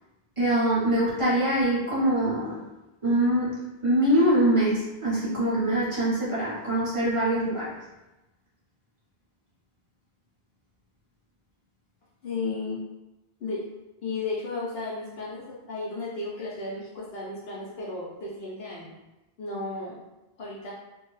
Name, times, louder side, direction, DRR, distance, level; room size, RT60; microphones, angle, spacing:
voice 1, 0.4-2.6 3.0-7.7, right 1 dB, 30° right, -9 dB, 1.0 m, -24 dB
voice 2, 12.2-12.8 13.4-13.6 14.0-18.9 19.4-20.0 20.4-20.7, left 3 dB, 75° left, -6 dB, 0.9 m, -34 dB
2.6 x 2.2 x 3.1 m, 1.0 s
omnidirectional pair, 1.0 m